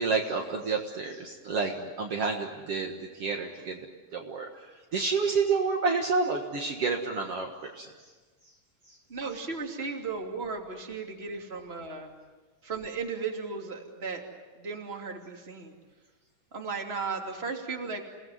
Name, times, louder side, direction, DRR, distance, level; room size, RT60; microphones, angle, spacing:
voice 1, 0.0-3.8 4.1-7.9 8.9-9.0, right 4 dB, 55° right, 1 dB, 2.5 m, -29 dB
voice 2, 9.1-12.1 12.6-14.2 14.6-15.7 16.5-18.0, right 4 dB, 20° right, 2 dB, 2.8 m, -35 dB
29.5 x 18.5 x 9.5 m, 1.3 s
omnidirectional pair, 3.5 m